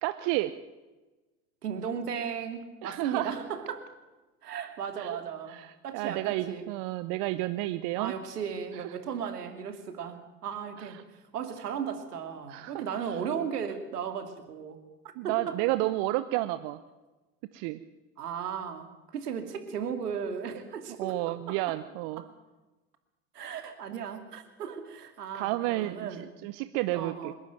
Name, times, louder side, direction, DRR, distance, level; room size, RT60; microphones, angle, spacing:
voice 1, 0.0-0.5 2.8-3.3 5.0-5.2 5.5-8.1 10.8-11.0 12.5-13.2 15.2-16.8 17.5-17.8 21.0-22.2 23.9-24.0 25.3-27.3, right 17 dB, 60° right, 12 dB, 1.1 m, -31 dB
voice 2, 1.6-3.8 4.4-5.6 5.8-6.7 8.0-11.0 11.3-14.8 15.2-15.6 18.2-21.8 22.2-22.3 23.3-26.2 26.9-27.3, right 7 dB, 80° right, 7 dB, 2.7 m, -36 dB
26.5 x 11.5 x 9.2 m, 1.2 s
hypercardioid pair, 70°, 46 cm